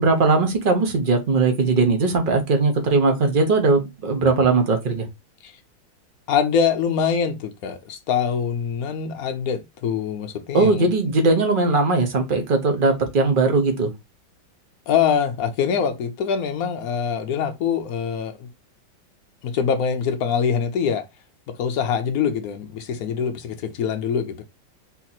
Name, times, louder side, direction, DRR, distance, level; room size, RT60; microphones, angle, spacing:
voice 1, 0.0-5.1 10.5-13.9, right 3 dB, 40° right, 0.8 m, -19 dB
voice 2, 6.3-10.9 14.9-18.5 19.4-21.0 21.5-24.4, left 7 dB, 70° left, 0.9 m, -24 dB
4.1 x 3.0 x 4.2 m
omnidirectional pair, 2.2 m